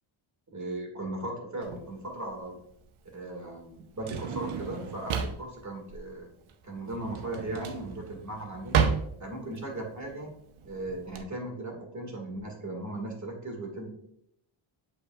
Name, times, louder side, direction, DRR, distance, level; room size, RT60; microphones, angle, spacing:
voice 1, 0.5-2.6 3.1-6.3 6.6-8.8 9.2-10.3 10.6-13.9, right 2 dB, 35° right, 2 dB, 2.1 m, -37 dB
Drawer open or close, 1.6-11.2, right 7 dB, 75° right, 0.8 m, -33 dB
8.1 x 5.3 x 2.4 m, 0.74 s
cardioid pair, 85°, 49 cm